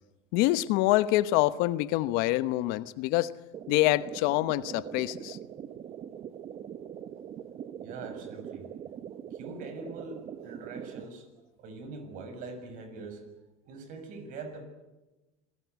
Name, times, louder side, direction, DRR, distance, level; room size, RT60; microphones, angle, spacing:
voice 1, 0.3-3.3 3.7-5.4, left 17 dB, 65° left, 14 dB, 1.1 m, -26 dB
sound 1, 3.5-11.0, right 9 dB, 40° right, 1.2 m, -42 dB
voice 2, 7.8-8.7 9.3-11.3 11.6-13.3 13.6-14.6, right 3 dB, 55° right, 8 dB, 6.6 m, -43 dB
27.0 x 19.0 x 8.2 m, 1.1 s
supercardioid pair, 110°, 16 cm